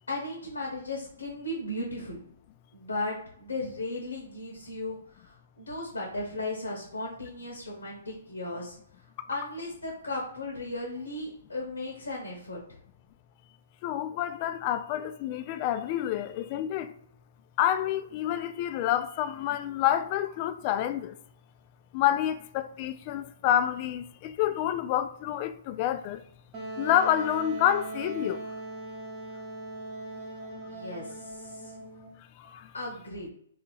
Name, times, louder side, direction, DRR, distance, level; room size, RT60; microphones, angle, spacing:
voice 1, 0.1-2.2 2.7-8.8 9.3-12.6 30.6-31.7 32.7-33.3, left 2 dB, 90° left, 1.0 m, -36 dB
voice 2, 13.8-16.9 17.6-21.1 21.9-26.2 26.8-28.4 32.4-32.7, left 11 dB, 40° left, 0.3 m, -28 dB
Wind instrument woodwind instrument, 26.5-32.1, right 2 dB, 25° right, 0.9 m, -39 dB
2.8 x 2.7 x 3.9 m
hypercardioid pair, 130°, 0 cm